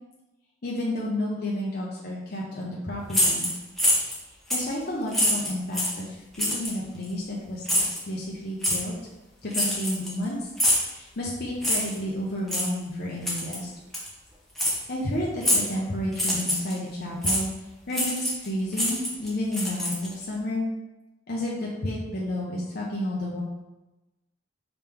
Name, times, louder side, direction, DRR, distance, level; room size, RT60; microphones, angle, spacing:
voice 1, 0.6-3.5 4.5-8.9 9.4-10.5 10.9-13.7 14.9-17.5 17.9-20.7 21.3-23.4, left 1 dB, 55° left, -4 dB, 0.7 m, -31 dB
sound 1, 3.1-4.2 4.5-4.7 5.1-6.0 6.4-6.7 7.6-8.0 8.6-8.8 9.5-10.2 10.6-10.9 11.6-12.0 12.5-12.7 13.2-13.6 13.9-14.1 14.6-14.8 15.4-15.7 16.1-16.7 17.2-17.4 17.9-18.5 18.7-20.2, left 1 dB, ahead, 0.9 m, -25 dB
5.2 x 3.0 x 3.4 m, 1.0 s
head